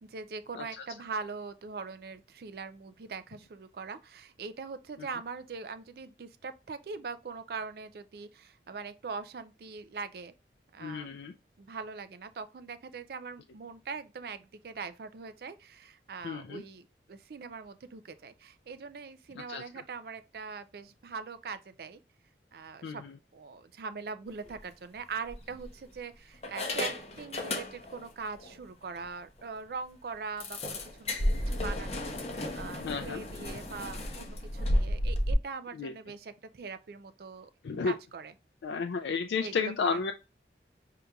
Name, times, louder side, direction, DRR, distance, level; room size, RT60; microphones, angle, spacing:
voice 1, 0.0-10.3 10.7-11.2 11.6-22.0 22.5-23.0 23.3-37.5 37.8-38.3 39.4-40.0, right 5 dB, 55° right, 0.4 m, -42 dB
voice 2, 10.8-11.3 16.2-16.6 19.5-19.6 22.8-23.1 32.8-33.2 35.8-35.9 37.6-37.9 38.6-40.1, left 5 dB, 80° left, 0.3 m, -32 dB
sound 1, 24.4-24.6 25.3-26.0 26.4-28.1 28.4-28.5 29.0-29.1 29.4-29.5 30.4-35.3, left 1 dB, 35° left, 0.7 m, -33 dB
5.0 x 2.8 x 2.3 m
head